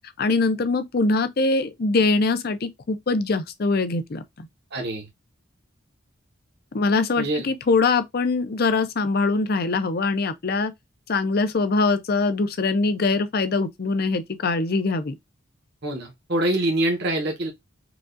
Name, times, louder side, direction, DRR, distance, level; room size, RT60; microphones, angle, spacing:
voice 1, 0.2-4.2 6.7-10.7 11.1-15.1, left 3 dB, 50° left, 0.5 m, -23 dB
voice 2, 4.7-5.1 7.2-7.5 15.8-17.5, right 1 dB, 55° right, 1.1 m, -25 dB
4.9 x 2.4 x 2.5 m
head